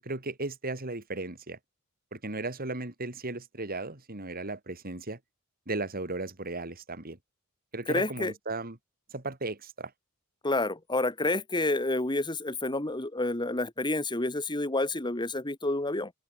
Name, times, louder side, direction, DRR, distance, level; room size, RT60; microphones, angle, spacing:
voice 1, 0.0-1.6 2.1-5.2 5.7-7.2 7.7-8.8 9.1-9.9, right 2 dB, 45° right, 3.3 m, -36 dB
voice 2, 7.9-8.3 10.4-16.1, left 2 dB, 20° left, 2.1 m, -29 dB
head